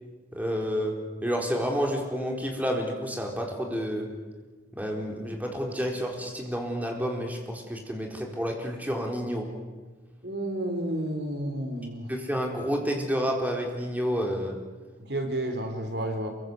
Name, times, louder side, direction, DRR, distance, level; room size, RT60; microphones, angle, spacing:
voice 1, 0.3-4.1 4.7-9.5 12.1-14.6, equal, 10° right, 1 dB, 4.1 m, -30 dB
voice 2, 10.2-12.1 15.1-16.3, right 1 dB, 60° right, 6 dB, 3.7 m, -31 dB
27.5 x 23.0 x 8.1 m, 1.3 s
head